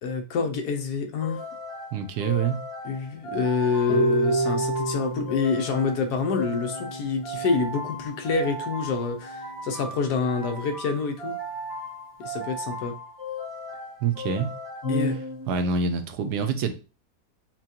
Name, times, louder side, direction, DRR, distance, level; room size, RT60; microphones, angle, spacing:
voice 1, 0.0-1.4 2.8-11.3 12.2-12.9 14.9-15.2, left 5 dB, 75° left, 1.3 m, -27 dB
sound 1, 1.2-15.7, equal, 25° left, 1.2 m, -35 dB
voice 2, 1.9-2.6 14.0-14.5 15.5-16.7, right 5 dB, 80° right, 1.1 m, -26 dB
Harp, 3.9-9.9, right 2 dB, 45° left, 1.9 m, -30 dB
5.8 x 2.3 x 2.8 m
omnidirectional pair, 1.8 m